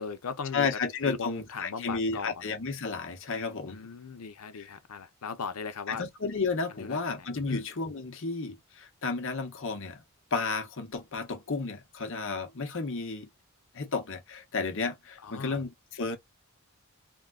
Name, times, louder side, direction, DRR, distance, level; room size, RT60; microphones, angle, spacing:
voice 1, 0.0-0.7 1.0-2.5 3.7-6.1 6.8-7.6 15.2-15.6, left 5 dB, 90° left, 0.7 m, -38 dB
voice 2, 0.5-3.8 4.5-4.8 5.9-10.0 10.3-13.3 13.7-16.2, left 4 dB, 60° left, 0.9 m, -32 dB
3.6 x 2.2 x 2.4 m
head